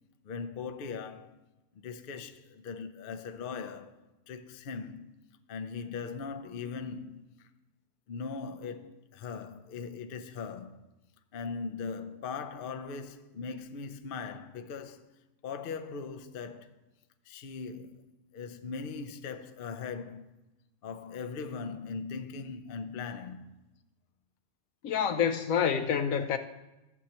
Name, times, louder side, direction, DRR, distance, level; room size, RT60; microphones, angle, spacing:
voice 1, 0.2-1.4 1.7-7.5 8.1-10.9 11.3-15.1 15.4-16.7 17.3-18.0 18.3-20.3 20.8-23.5, left 5 dB, 55° left, 0.7 m, -40 dB
voice 2, 24.8-26.4, left 7 dB, 75° left, 1.0 m, -27 dB
14.5 x 7.9 x 2.9 m
omnidirectional pair, 1.5 m